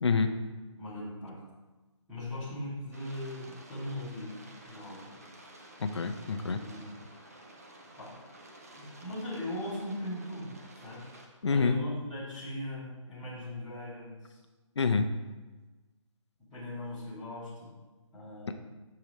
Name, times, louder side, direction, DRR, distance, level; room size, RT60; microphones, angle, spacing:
voice 1, 0.0-0.3 5.8-6.6 11.4-11.7 14.8-15.1 18.5-18.6, left 4 dB, 60° left, 7 dB, 0.5 m, -27 dB
voice 2, 0.8-1.4 2.1-4.4 4.6-5.2 6.3-7.0 8.0-8.2 8.7-11.1 11.5-14.4 16.5-17.7 18.1-18.5, left 1 dB, ahead, -14 dB, 0.9 m, -39 dB
sound 1, 2.9-11.3, right 1 dB, 30° right, 0.5 m, -52 dB
6.6 x 4.7 x 3.0 m, 1.2 s
hypercardioid pair, 180°, 16 cm